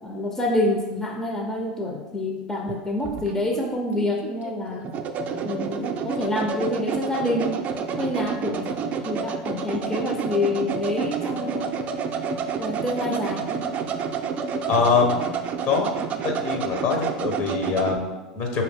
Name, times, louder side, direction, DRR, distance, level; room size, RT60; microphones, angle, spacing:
voice 1, 0.0-4.9 5.4-7.6 8.0-11.8 12.5-13.6, left 1 dB, 15° left, 1 dB, 0.5 m, -27 dB
sound 1, 2.7-18.0, right 6 dB, 40° right, 0.4 m, -29 dB
voice 2, 14.7-15.2 15.6-15.9 16.2-18.6, left 5 dB, 55° left, 2 dB, 1.0 m, -23 dB
4.9 x 2.8 x 3.4 m, 1.2 s
hypercardioid pair, 95°, 4 cm